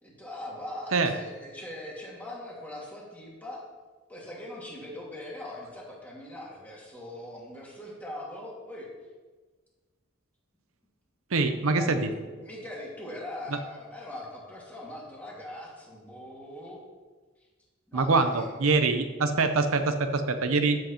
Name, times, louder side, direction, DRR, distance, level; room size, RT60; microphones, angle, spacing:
voice 1, 0.0-3.6 4.1-8.9 11.6-16.8 17.9-18.7, left 1 dB, 5° left, -4 dB, 2.0 m, -41 dB
voice 2, 11.3-12.1 17.9-20.8, right 3 dB, 75° right, 8 dB, 0.7 m, -24 dB
13.0 x 7.6 x 3.0 m, 1.4 s
head